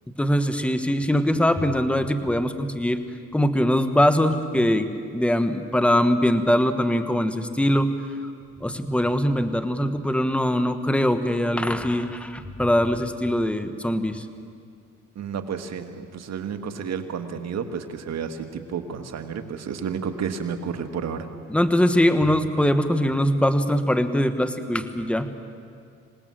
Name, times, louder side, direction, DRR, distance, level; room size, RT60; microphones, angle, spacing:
voice 1, 0.2-3.0 3.3-4.9 5.1-7.9 8.6-14.2 21.5-25.3, equal, 5° left, 10 dB, 1.3 m, -22 dB
voice 2, 15.1-21.3, right 6 dB, 60° right, 7 dB, 1.7 m, -31 dB
26.5 x 18.0 x 7.7 m, 2.3 s
cardioid pair, 90°, 30 cm